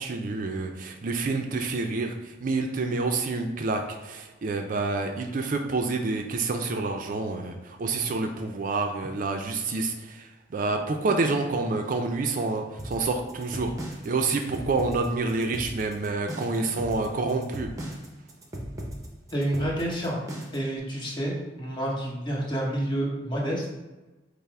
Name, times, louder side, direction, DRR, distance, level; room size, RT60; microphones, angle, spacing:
voice 1, 0.0-13.7 14.0-17.7, right 3 dB, 45° right, 4 dB, 0.4 m, -28 dB
sound 1, 12.8-20.7, equal, 15° right, 0.7 m, -37 dB
voice 2, 19.3-20.2 20.5-23.7, right 1 dB, 25° left, -4 dB, 1.1 m, -29 dB
5.5 x 2.0 x 4.6 m, 1.1 s
head